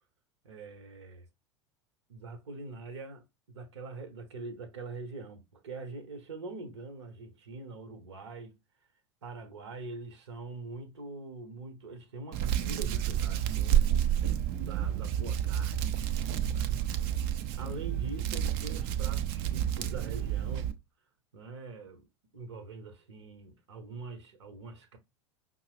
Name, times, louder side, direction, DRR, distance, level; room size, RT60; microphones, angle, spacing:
voice 1, 0.4-1.2 2.1-8.6 9.2-13.9 14.6-15.9 16.5-16.8 17.5-20.7 21.3-22.1 22.3-25.0, right 3 dB, 70° right, 0.9 m, -44 dB
Hands, 12.3-20.7, right 10 dB, 50° right, 0.5 m, -30 dB
5.3 x 2.0 x 3.1 m
figure-of-eight pair, 80°, 15 cm